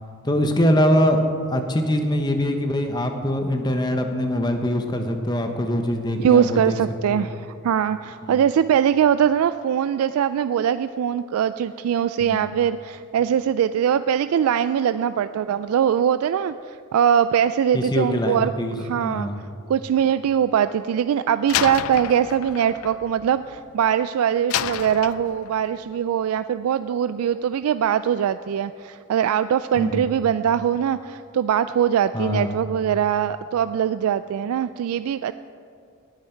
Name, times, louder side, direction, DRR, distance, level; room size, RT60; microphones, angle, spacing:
voice 1, 0.2-1.2 1.5-6.8 7.1-7.3 8.2-8.4 12.2-12.4 17.7-19.4 29.8-30.1 32.1-32.5, equal, 20° left, 5 dB, 0.9 m, -23 dB
voice 2, 6.2-18.5 18.8-19.3 19.7-35.3, right 8 dB, 85° right, 12 dB, 0.3 m, -22 dB
Slam, 21.5-23.9 24.5-25.7, left 10 dB, 80° left, 0.4 m, -30 dB
18.5 x 9.2 x 4.5 m, 2.5 s
head